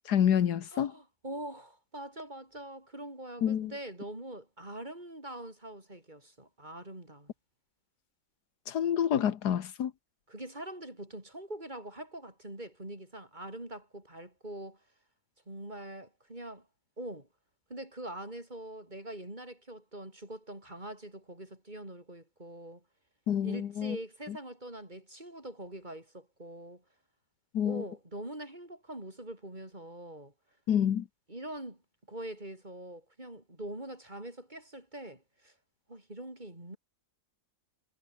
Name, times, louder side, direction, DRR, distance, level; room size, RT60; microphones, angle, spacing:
voice 1, 0.0-0.9 3.4-3.7 8.7-9.9 23.3-24.0 24.3-24.4 27.5-27.8 30.7-31.0, left 9 dB, 85° left, 1.7 m, -28 dB
voice 2, 0.7-7.3 10.3-14.8 15.5-16.7 17.0-17.3 17.7-22.8 23.4-26.8 27.6-30.3 31.3-31.8 32.1-35.5 35.9-36.8, right 1 dB, 30° right, 5.6 m, -43 dB
omnidirectional pair, 1.7 m